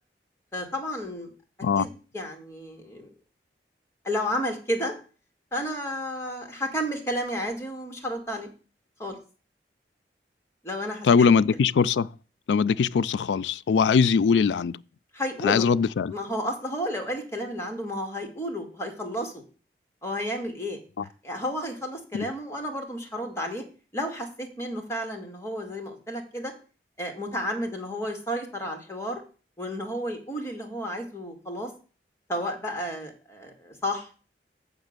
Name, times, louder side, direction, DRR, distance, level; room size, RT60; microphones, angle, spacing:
voice 1, 0.5-1.3 1.8-3.1 4.0-4.9 5.5-8.5 9.0-9.2 10.6-11.3 15.1-15.7 16.1-19.4 20.0-20.8 21.2-23.6 23.9-26.5 27.0-29.2 29.6-31.7 32.3-34.1, equal, 15° left, 2.0 m, -32 dB
voice 2, 11.0-12.1 12.5-14.8 15.4-16.1 22.1-22.3, left 5 dB, 90° left, 0.4 m, -21 dB
7.1 x 6.8 x 6.6 m
head